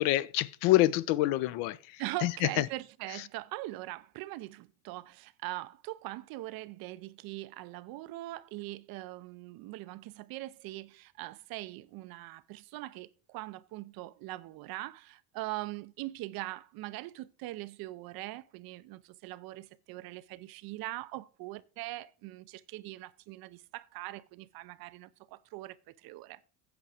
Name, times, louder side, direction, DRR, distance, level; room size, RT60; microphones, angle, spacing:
voice 1, 0.0-2.3 2.6-2.7, left 16 dB, 60° left, 0.7 m, -27 dB
voice 2, 2.0-26.4, right 18 dB, 50° right, 0.5 m, -42 dB
8.4 x 7.3 x 4.8 m
supercardioid pair, 110°, 49 cm